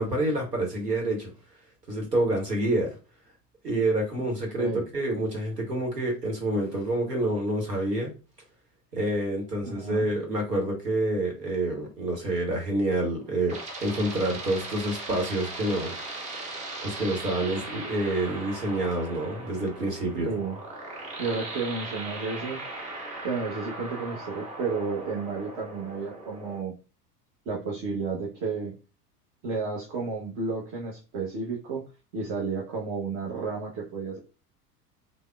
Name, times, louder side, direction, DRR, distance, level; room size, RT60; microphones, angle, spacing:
voice 1, 0.0-1.3 1.9-3.0 3.6-8.1 8.9-15.9 16.8-20.3, right 1 dB, 85° right, 1.0 m, -28 dB
voice 2, 9.6-10.1 20.1-20.6 21.2-22.6 23.2-26.7 27.5-28.7 29.4-31.9 32.1-34.2, right 4 dB, 35° right, 0.8 m, -32 dB
sound 1, 13.1-26.6, right 2 dB, 15° right, 0.4 m, -39 dB
3.4 x 2.1 x 2.3 m
figure-of-eight pair, 75°, 47 cm